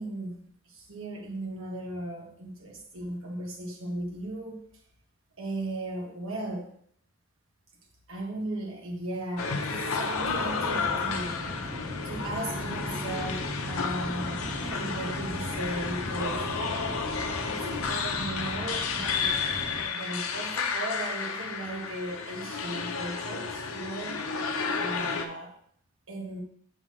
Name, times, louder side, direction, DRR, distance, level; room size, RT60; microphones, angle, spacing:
voice 1, 0.0-4.6 5.4-6.7 8.1-11.4 12.0-16.5 17.4-19.4 19.7-24.2 24.7-25.6 26.1-26.4, right 1 dB, 70° right, 0 dB, 1.3 m, -36 dB
sound 1, 9.4-25.3, left 5 dB, 80° left, 0.6 m, -32 dB
sound 2, 10.1-19.8, equal, 45° right, 1.8 m, -38 dB
6.4 x 5.8 x 3.1 m, 0.64 s
head